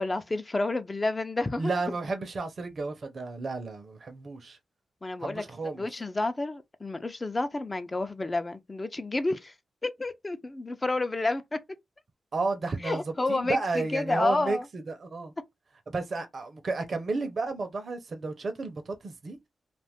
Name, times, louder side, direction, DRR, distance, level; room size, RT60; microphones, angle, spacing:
voice 1, 0.0-1.8 5.0-5.4 5.8-9.5 9.8-11.6 12.8-14.7, left 2 dB, 30° left, 0.6 m, -30 dB
voice 2, 1.6-4.6 5.2-5.9 12.3-13.0 13.3-15.3 15.9-19.4, right 3 dB, 55° right, 0.7 m, -32 dB
2.5 x 2.5 x 3.5 m
cardioid pair, 55°, 0 cm